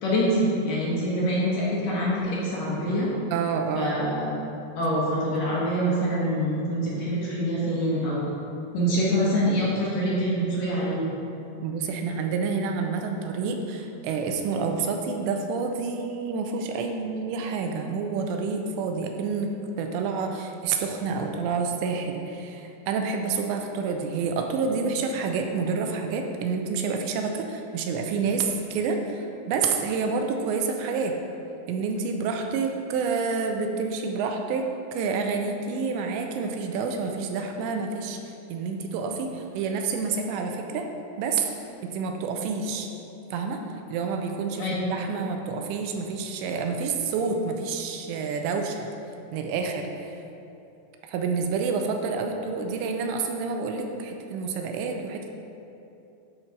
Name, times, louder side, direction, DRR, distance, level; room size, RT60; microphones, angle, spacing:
voice 1, 0.0-3.1 3.8-4.3 4.8-8.2 8.7-11.0 44.6-44.7, equal, 60° left, -7 dB, 2.7 m, -25 dB
voice 2, 3.3-3.9 9.2-9.5 11.6-31.1 31.7-38.2 38.5-40.9 41.2-41.4 41.8-42.9 43.3-43.6 43.9-48.9 49.3-49.9 51.0-55.3, right 5 dB, 85° right, 4 dB, 2.8 m, -28 dB
12.0 x 4.3 x 5.1 m, 2.8 s
omnidirectional pair, 5.2 m